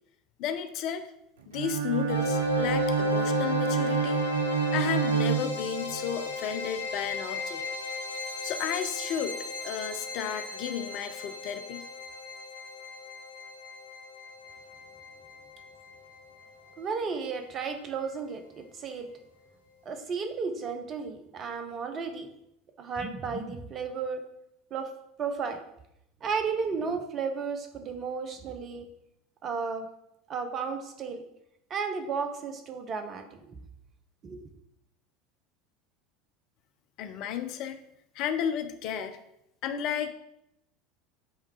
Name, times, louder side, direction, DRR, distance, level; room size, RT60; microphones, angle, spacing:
voice 1, 0.4-1.1 1.5-4.2 4.7-7.6 8.4-9.4 9.6-11.9 37.0-37.8 38.1-39.2 39.6-40.1, left 8 dB, 50° left, 9 dB, 0.7 m, -33 dB
Bowed string instrument, 1.5-6.1, right 6 dB, 70° right, 0.6 m, -28 dB
sound 1, 2.1-17.1, left 4 dB, 85° left, 0.9 m, -36 dB
voice 2, 16.8-19.1 19.8-22.3 22.8-24.2 24.7-24.9 25.2-25.6 26.2-28.9 29.4-29.9 30.3-31.2 31.7-33.6 34.2-34.5, right 5 dB, 35° right, 6 dB, 1.1 m, -33 dB
8.0 x 3.5 x 4.8 m, 0.80 s
figure-of-eight pair, 75°, 0 cm